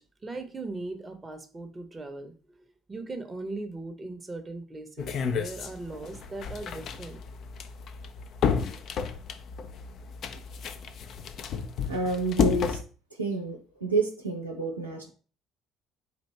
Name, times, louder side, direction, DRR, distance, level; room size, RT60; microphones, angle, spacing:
voice 1, 0.2-7.2, right 2 dB, 20° right, 6 dB, 0.7 m, -39 dB
sound 1, 5.0-12.8, left 6 dB, 50° left, 0.4 m, -31 dB
voice 2, 11.9-12.8 13.2-15.1, right 2 dB, 90° right, -1 dB, 0.7 m, -29 dB
4.4 x 2.6 x 3.2 m, 0.39 s
figure-of-eight pair, 55°, 0 cm